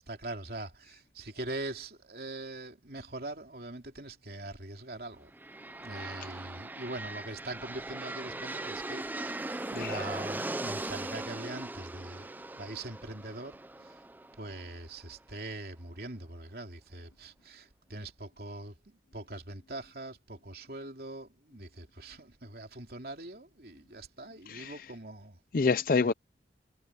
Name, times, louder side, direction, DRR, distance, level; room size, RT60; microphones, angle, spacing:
voice 1, 0.0-5.3 5.8-9.4 9.7-14.0 14.4-18.8 19.1-25.4 25.9-26.1, right 2 dB, 55° right, 3.1 m, -42 dB
sound 1, 5.3-15.1, right 2 dB, 10° right, 0.4 m, -39 dB
voice 2, 24.5-24.9 25.5-26.1, left 4 dB, 50° left, 0.5 m, -27 dB
head